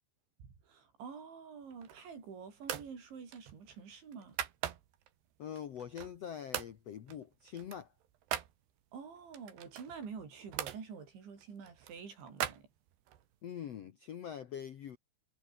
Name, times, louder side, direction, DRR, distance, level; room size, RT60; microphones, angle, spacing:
voice 1, 0.4-4.4 8.9-12.7, right 6 dB, 90° right, 8.0 m, -48 dB
sound 1, 1.6-2.2 2.6-2.9 3.3-5.1 5.6-6.2 6.5-6.8 7.1-8.5 9.3-10.8 11.4-13.2, right 11 dB, 70° right, 3.9 m, -41 dB
voice 2, 5.4-7.9 13.4-15.0, left 9 dB, 90° left, 1.4 m, -44 dB
omnidirectional pair, 5.1 m